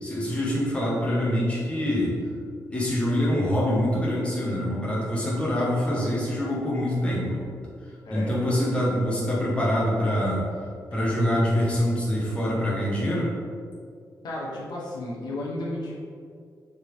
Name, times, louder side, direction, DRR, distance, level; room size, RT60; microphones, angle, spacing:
voice 1, 0.0-2.2 2.7-7.4 8.1-10.4 10.9-13.3, equal, 15° left, -6 dB, 1.5 m, -25 dB
voice 2, 8.0-8.5 14.2-15.9, left 1 dB, 85° left, -5 dB, 1.5 m, -33 dB
6.7 x 4.2 x 3.8 m, 2.2 s
wide cardioid pair, 145°, 7 cm